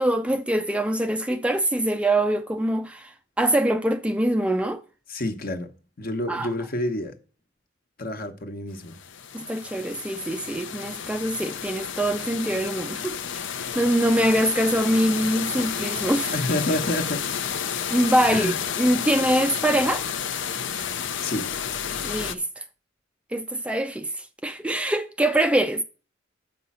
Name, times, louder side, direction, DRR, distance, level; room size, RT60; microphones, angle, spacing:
voice 1, 0.0-4.8 6.3-6.5 9.3-13.4 13.8-16.3 17.9-20.0 22.0-22.6 23.3-25.8, right 1 dB, 5° right, 0.4 m, -24 dB
voice 2, 5.1-5.7 6.0-7.1 8.0-9.0 16.3-17.2 18.3-18.6 21.2-21.5, left 1 dB, 50° left, 1.1 m, -28 dB
sound 1, 8.8-22.3, left 8 dB, 65° left, 0.7 m, -31 dB
7.4 x 5.4 x 5.5 m
head